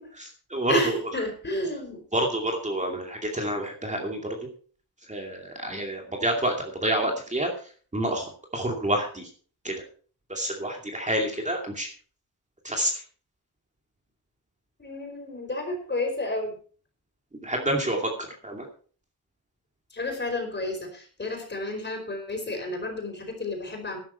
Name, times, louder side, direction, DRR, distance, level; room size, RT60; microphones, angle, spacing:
voice 1, 0.1-1.0 2.1-4.4 5.1-7.5 7.9-9.3 9.6-9.7 10.3-11.9 12.6-13.0 17.4-18.7, right 1 dB, 20° right, 1 dB, 2.5 m, -28 dB
voice 2, 0.7-2.0 14.8-16.5 19.9-24.0, left 1 dB, 30° left, 3 dB, 4.9 m, -31 dB
13.0 x 11.5 x 4.4 m, 0.41 s
wide cardioid pair, 135°, 38 cm